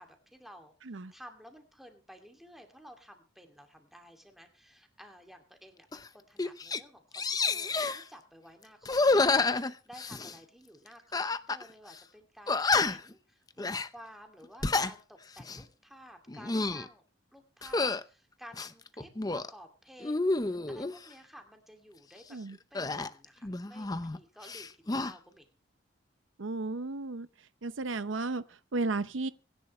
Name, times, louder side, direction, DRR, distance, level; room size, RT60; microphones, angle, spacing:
voice 1, 0.0-17.0 17.3-19.1 19.5-22.4 22.7-25.5, equal, ahead, 2.5 m, -53 dB
sound 1, 5.9-6.1 6.4-6.8 7.1-8.0 8.8-10.4 11.1-11.6 11.9-12.0 12.5-13.1 13.6-13.9 14.4-14.9 15.4-15.6 16.3-16.9 17.6-18.0 18.5-19.5 20.0-21.0 22.8-24.2 24.4-25.1, left 3 dB, 20° left, 0.6 m, -29 dB
voice 2, 26.4-27.3 27.6-29.3, right 3 dB, 80° right, 0.7 m, -34 dB
25.0 x 11.0 x 3.2 m
head